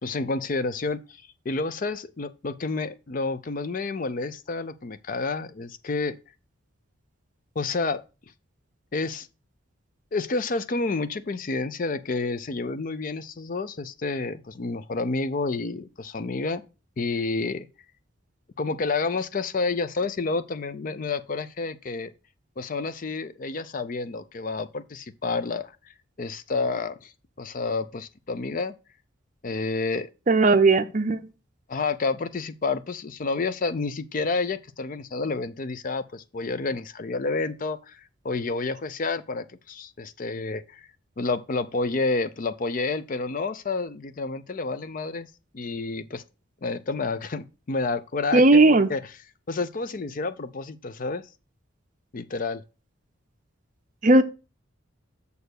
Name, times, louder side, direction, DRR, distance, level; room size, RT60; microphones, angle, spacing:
voice 1, 0.0-1.2 1.5-6.2 7.6-8.0 8.9-9.3 10.1-16.6 17.0-17.7 18.6-22.1 22.6-27.1 27.4-28.7 29.4-30.1 31.7-40.9 41.2-45.3 45.5-46.2 46.6-49.1 49.5-51.2 52.1-52.6, left 3 dB, 40° left, 0.4 m, -29 dB
voice 2, 30.3-31.2 48.3-48.9 54.0-54.2, right 2 dB, 40° right, 0.6 m, -17 dB
6.8 x 4.4 x 6.5 m
head